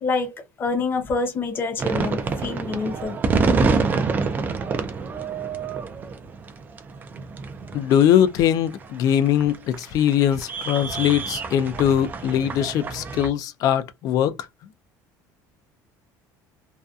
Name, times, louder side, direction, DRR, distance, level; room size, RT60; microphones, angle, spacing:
voice 1, 0.0-3.2, left 3 dB, 25° left, 0.8 m, -26 dB
sound 1, 1.8-13.3, right 4 dB, 25° right, 0.3 m, -27 dB
voice 2, 7.7-14.4, left 10 dB, 50° left, 0.4 m, -21 dB
2.6 x 2.2 x 2.3 m
cardioid pair, 160°, 8 cm